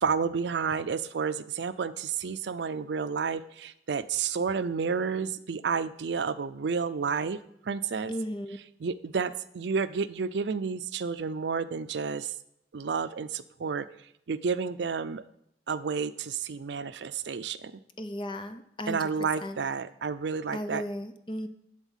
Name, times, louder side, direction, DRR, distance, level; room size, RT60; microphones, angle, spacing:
voice 1, 0.0-7.4 7.7-8.1 8.8-12.3 12.7-13.8 14.3-15.2 15.7-17.6 18.9-20.8, right 5 dB, 80° right, 13 dB, 0.5 m, -30 dB
voice 2, 8.1-8.6 18.0-19.0 19.4-19.6 20.5-21.5, equal, 30° left, 9 dB, 0.6 m, -35 dB
11.0 x 4.0 x 7.3 m, 0.76 s
head